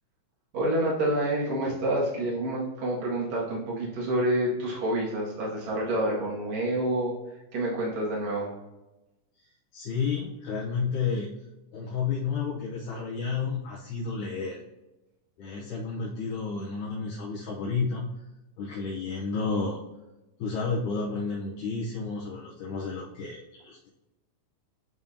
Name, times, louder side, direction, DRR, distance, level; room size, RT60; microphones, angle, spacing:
voice 1, 0.5-7.1 7.5-8.5, right 1 dB, 55° right, -5 dB, 2.9 m, -28 dB
voice 2, 9.7-11.3 11.7-14.6 15.4-18.1 18.6-19.8 20.4-23.9, left 5 dB, 75° left, -5 dB, 2.2 m, -31 dB
10.5 x 3.5 x 2.7 m, 1.0 s
omnidirectional pair, 3.8 m